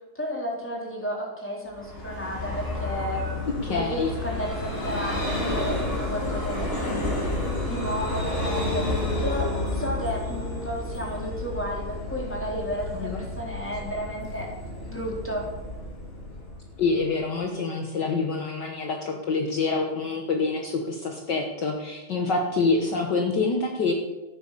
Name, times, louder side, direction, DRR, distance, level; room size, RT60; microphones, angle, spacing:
voice 1, 0.1-3.3 3.7-7.1 7.7-9.5 9.7-14.5 14.9-15.5, equal, 5° left, -2 dB, 3.8 m, -32 dB
Vehicle, 1.7-17.2, left 2 dB, 25° left, 3.7 m, -31 dB
voice 2, 3.6-4.1 12.9-13.2 16.8-23.9, left 4 dB, 55° left, 2 dB, 1.9 m, -26 dB
13.5 x 11.0 x 6.8 m, 1.1 s
omnidirectional pair, 2.3 m